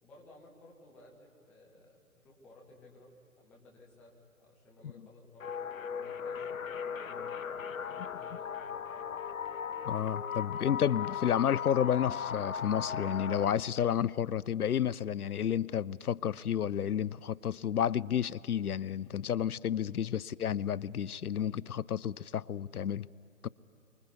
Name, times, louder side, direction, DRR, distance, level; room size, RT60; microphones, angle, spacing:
voice 1, 0.0-6.7 7.5-9.1, left 2 dB, 5° left, 0.7 m, -57 dB
sound 1, 5.4-13.4, left 7 dB, 65° left, 0.9 m, -37 dB
voice 2, 9.8-23.1 23.4-23.5, left 9 dB, 85° left, 0.5 m, -31 dB
29.0 x 24.0 x 4.7 m
figure-of-eight pair, 140°, 44 cm